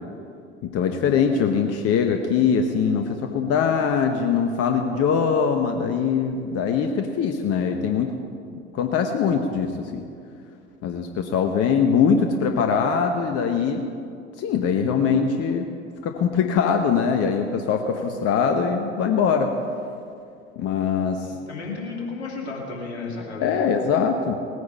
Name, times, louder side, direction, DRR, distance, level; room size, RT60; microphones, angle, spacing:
voice 1, 0.6-8.1 8.7-10.0 10.8-13.9 14.4-15.7 16.0-19.5 20.6-21.3 23.4-24.3, left 6 dB, 45° left, 5 dB, 1.1 m, -22 dB
voice 2, 21.3-23.6, left 4 dB, 80° left, -1 dB, 2.7 m, -33 dB
19.0 x 9.6 x 5.6 m, 2.4 s
figure-of-eight pair, 65°, 33 cm